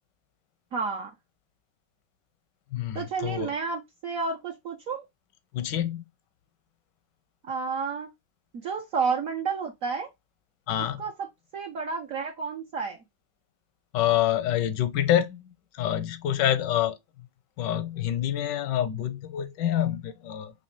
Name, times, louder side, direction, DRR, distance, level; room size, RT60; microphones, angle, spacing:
voice 1, 0.7-1.1 2.9-5.0 7.5-8.1 8.6-10.1 11.0-13.0, right 5 dB, 60° right, 1.0 m, -31 dB
voice 2, 2.7-3.5 5.5-6.0 10.7-11.0 13.9-17.0 17.6-20.5, left 11 dB, 85° left, 1.3 m, -27 dB
4.1 x 3.1 x 3.0 m
omnidirectional pair, 1.9 m